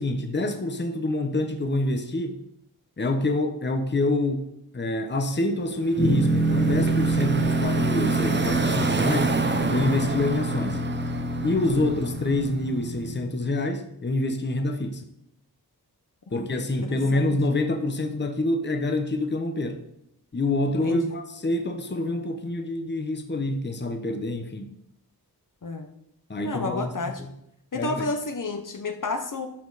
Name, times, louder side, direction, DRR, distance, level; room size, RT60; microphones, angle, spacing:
voice 1, 0.0-2.4 3.0-4.5 4.7-9.4 9.7-10.8 11.4-15.1 16.3-19.8 20.3-24.7 26.3-27.3 27.7-28.1, left 2 dB, 30° left, 6 dB, 1.0 m, -26 dB
Car passing by / Traffic noise roadway noise, 5.7-12.7, right 3 dB, 30° right, 0.9 m, -30 dB
sound 1, 6.0-13.2, right 2 dB, 10° left, 2.0 m, -26 dB
voice 2, 16.8-17.3 20.8-21.2 25.6-25.9 26.4-27.2 27.7-29.5, left 3 dB, 55° left, 6 dB, 1.1 m, -31 dB
12.0 x 6.3 x 4.1 m, 0.78 s
wide cardioid pair, 80°, 39 cm